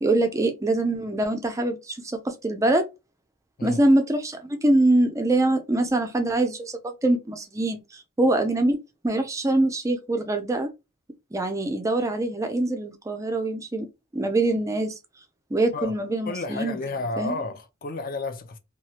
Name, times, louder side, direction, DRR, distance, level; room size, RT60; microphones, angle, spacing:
voice 1, 0.0-2.9 3.6-10.7 11.3-13.9 14.1-14.9 15.5-16.8 17.2-17.3, right 2 dB, 15° right, 0.3 m, -24 dB
voice 2, 16.2-18.6, left 3 dB, 45° left, 0.5 m, -31 dB
3.0 x 2.3 x 2.7 m
head